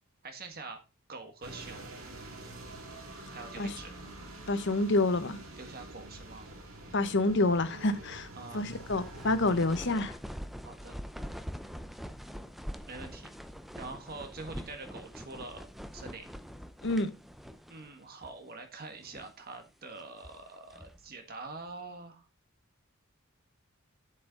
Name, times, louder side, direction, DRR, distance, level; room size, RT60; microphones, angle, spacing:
voice 1, 0.2-0.8 1.1-1.9 3.3-3.9 5.6-6.5 8.3-8.7 10.6-11.0 12.8-13.3 13.7-15.7 15.9-16.3 17.7-22.3, right 3 dB, 45° right, 1.5 m, -45 dB
sound 1, 1.4-9.9, right 2 dB, 70° right, 2.7 m, -46 dB
voice 2, 4.5-5.4 6.9-8.3 8.5-10.2 16.8-17.1, left 2 dB, 55° left, 1.0 m, -28 dB
sound 2, 8.4-17.9 18.2-18.3 18.9-19.4 20.0-21.1, equal, ahead, 0.5 m, -44 dB
8.6 x 7.5 x 3.9 m
head